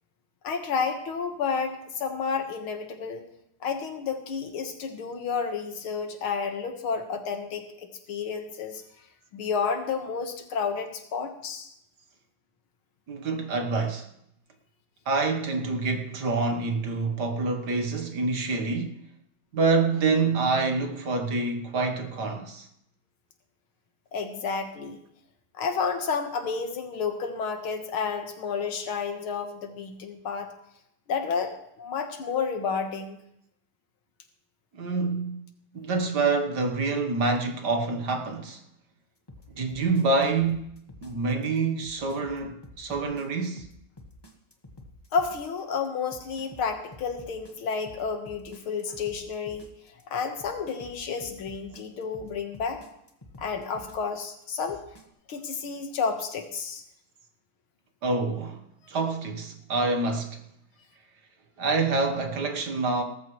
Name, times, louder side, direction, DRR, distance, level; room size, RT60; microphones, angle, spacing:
voice 1, 0.4-3.3 3.6-8.8 9.3-11.7 24.1-25.0 25.6-30.5 31.1-33.2 45.1-49.7 50.1-52.8 53.4-54.8 55.3-56.8, left 5 dB, 75° left, 2.3 m, -31 dB
voice 2, 13.1-14.1 15.0-19.0 19.5-22.7 34.7-35.4 35.7-38.6 39.5-43.7 58.0-58.6 58.9-60.4 61.6-63.0, right 3 dB, 55° right, 1.7 m, -27 dB
sound 1, 39.3-55.0, left 1 dB, 15° left, 0.9 m, -49 dB
18.0 x 14.0 x 3.2 m
omnidirectional pair, 2.3 m